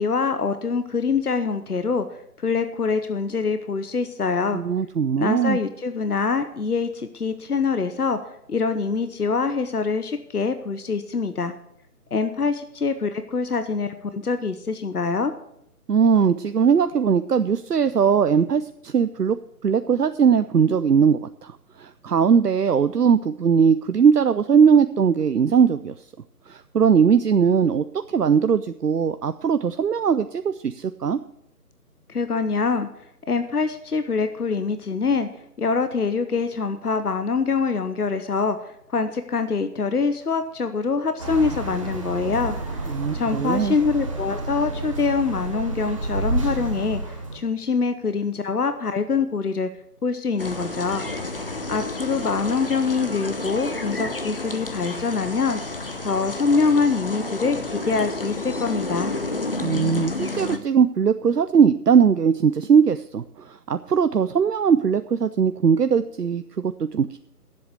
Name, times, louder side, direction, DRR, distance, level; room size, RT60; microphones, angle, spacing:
voice 1, 0.0-2.1 2.4-4.6 5.2-8.2 8.5-11.5 12.1-15.3 32.1-32.9 33.3-35.3 35.6-42.6 43.1-49.7 50.0-51.0 51.7-55.6 56.0-59.1, left 4 dB, 70° left, 10 dB, 1.0 m, -24 dB
voice 2, 4.5-5.6 15.9-19.4 19.6-25.9 26.5-31.2 42.9-43.8 59.6-67.2, right 6 dB, 75° right, 11 dB, 0.7 m, -20 dB
sound 1, 41.2-47.4, right 2 dB, 20° right, 1.2 m, -30 dB
sound 2, 50.4-60.6, left 2 dB, 35° left, 0.9 m, -30 dB
10.5 x 7.9 x 8.1 m, 0.76 s
figure-of-eight pair, 155°, 47 cm